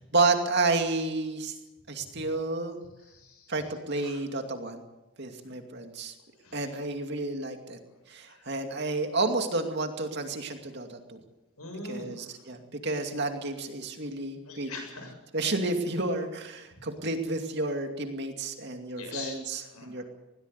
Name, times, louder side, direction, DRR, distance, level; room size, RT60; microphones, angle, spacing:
voice 1, 0.1-1.5 1.9-2.8 3.5-4.8 5.2-6.1 6.5-7.8 8.1-11.2 11.9-14.7 15.3-20.0, right 3 dB, 50° right, 5 dB, 2.5 m, -30 dB
voice 2, 3.0-3.5 4.0-4.2 6.4-6.6 8.3-8.5 11.6-12.2 14.5-15.2 18.8-20.0, left 3 dB, 90° left, 4 dB, 7.7 m, -43 dB
20.5 x 18.0 x 8.3 m, 1.0 s
head